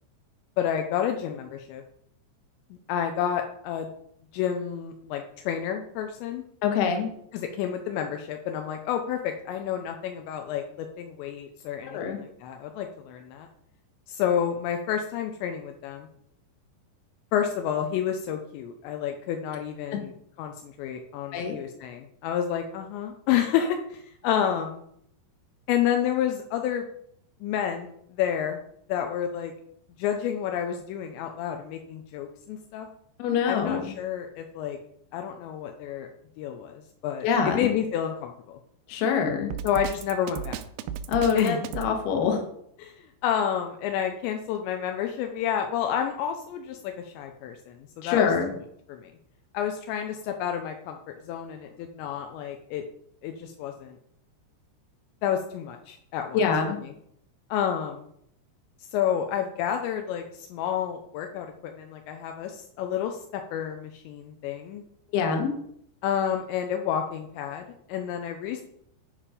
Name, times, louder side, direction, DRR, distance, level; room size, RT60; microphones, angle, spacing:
voice 1, 0.6-1.8 2.9-3.9 4.3-6.4 7.3-13.5 14.1-16.1 17.3-20.1 20.4-24.8 25.7-26.9 27.4-28.6 28.9-29.5 30.0-32.9 33.5-34.8 35.1-36.1 36.4-38.6 39.6-40.6 41.4-41.6 42.8-42.9 43.2-48.3 48.9-49.1 49.5-51.0 51.3-52.8 53.2-54.0 55.2-56.4 56.8-56.9 57.5-58.1 58.9-64.8 66.0-68.6, left 9 dB, 85° left, 4 dB, 2.9 m, -30 dB
voice 2, 6.6-7.1 11.8-12.2 19.9-20.0 21.3-21.6 33.2-33.9 37.2-37.7 38.9-39.5 41.1-42.4 48.0-48.5 56.3-56.8 65.1-65.5, left 6 dB, 65° left, 4 dB, 3.0 m, -25 dB
Drum kit, 39.5-41.9, right 9 dB, 85° right, 3.0 m, -34 dB
10.0 x 5.1 x 5.0 m, 0.70 s
omnidirectional pair, 5.2 m